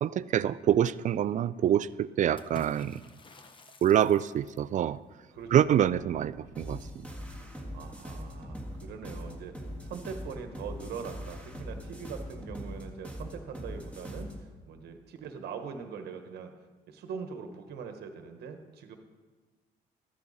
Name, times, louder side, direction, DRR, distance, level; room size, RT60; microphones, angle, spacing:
voice 1, 0.0-3.0 3.8-5.0 5.5-7.0, right 10 dB, 50° right, 18 dB, 0.4 m, -26 dB
Water / Splash splatter, 2.4-4.7, left 3 dB, 30° left, 0.9 m, -50 dB
sound 1, 5.3-12.5, left 1 dB, 75° left, 3.8 m, -53 dB
sound 2, 6.5-14.5, equal, 10° left, 1.8 m, -41 dB
voice 2, 7.7-16.5 16.9-19.0, right 6 dB, 80° right, 6 dB, 1.1 m, -42 dB
13.0 x 10.0 x 4.1 m, 1.4 s
cardioid pair, 110°, 17 cm